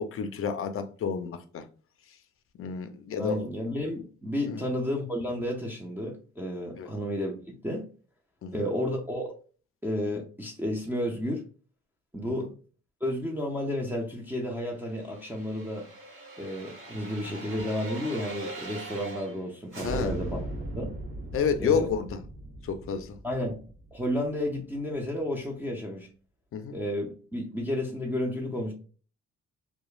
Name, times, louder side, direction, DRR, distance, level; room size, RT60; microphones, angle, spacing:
voice 1, 0.0-1.7 2.6-3.4 4.5-4.6 6.8-6.9 8.4-8.6 12.2-12.5 19.8-20.1 21.3-22.2 22.6-23.2 26.5-26.8, left 6 dB, 45° left, 0.5 m, -30 dB
voice 2, 3.2-7.3 7.6-7.9 8.5-9.3 9.8-11.4 12.1-12.5 13.0-15.9 16.4-20.4 20.8-20.9 21.6-21.9 23.2-23.6 23.9-26.1 26.7-28.7, left 1 dB, 5° right, 0.5 m, -31 dB
sound 1, 14.7-19.4 19.7-24.6 24.9-25.0, right 2 dB, 45° right, 1.2 m, -40 dB
2.9 x 2.2 x 2.4 m
cardioid pair, 90°, 30 cm